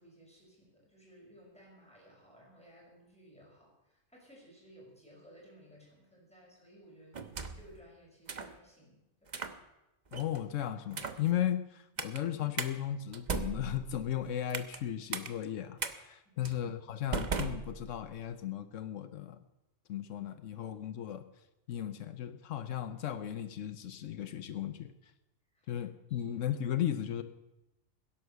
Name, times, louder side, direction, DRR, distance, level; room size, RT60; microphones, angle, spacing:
voice 1, 0.0-9.4 12.0-12.1 16.2-16.6 25.5-25.8 26.1-26.3, equal, 5° left, -3 dB, 6.0 m, -58 dB
sound 1, 7.1-7.7 8.3-8.6 9.3-9.6 10.1-10.4 10.9-11.3 12.0-12.2 12.6-12.7 13.1-14.8 15.1-15.3 15.8-15.9 16.4-16.6 17.1-18.2, right 4 dB, 40° right, 1.0 m, -37 dB
voice 2, 10.1-19.4 19.9-21.2 21.7-24.9 25.7-27.2, left 10 dB, 85° left, 11 dB, 1.1 m, -36 dB
16.5 x 11.0 x 6.7 m, 0.96 s
omnidirectional pair, 1.3 m